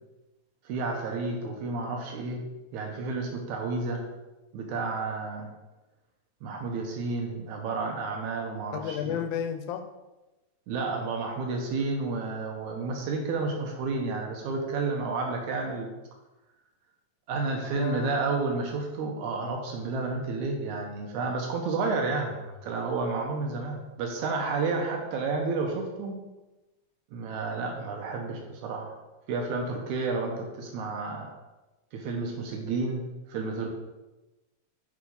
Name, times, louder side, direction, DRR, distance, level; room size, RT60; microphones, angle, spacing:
voice 1, 0.6-2.4 2.7-4.0 4.5-5.5 6.4-9.2 10.7-15.9 17.3-26.2 27.1-29.0 29.3-31.3 31.9-33.7, right 3 dB, 80° right, 1 dB, 2.3 m, -31 dB
voice 2, 8.7-9.8 17.8-18.1, left 9 dB, 90° left, 7 dB, 2.1 m, -32 dB
8.2 x 4.8 x 5.3 m, 1.1 s
omnidirectional pair, 3.4 m